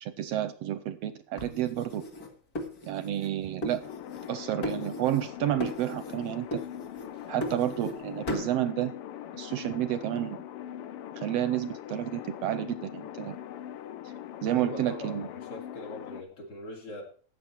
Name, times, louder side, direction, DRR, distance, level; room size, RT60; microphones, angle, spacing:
voice 1, 0.0-2.0 2.8-3.8 4.3-6.6 7.3-8.9 9.3-10.4 11.1-13.4 14.4-15.3, right 12 dB, 75° right, 12 dB, 1.5 m, -30 dB
sound 1, 1.4-3.3 3.6-4.3 4.6-5.3 5.6-6.2 6.5-8.0 8.3-8.5, left 1 dB, 35° left, 1.8 m, -37 dB
sound 2, 3.8-16.2, left 11 dB, 75° left, 1.3 m, -41 dB
voice 2, 14.5-17.0, left 1 dB, 50° left, 1 dB, 3.7 m, -42 dB
13.5 x 8.6 x 4.5 m, 0.43 s
omnidirectional pair, 3.4 m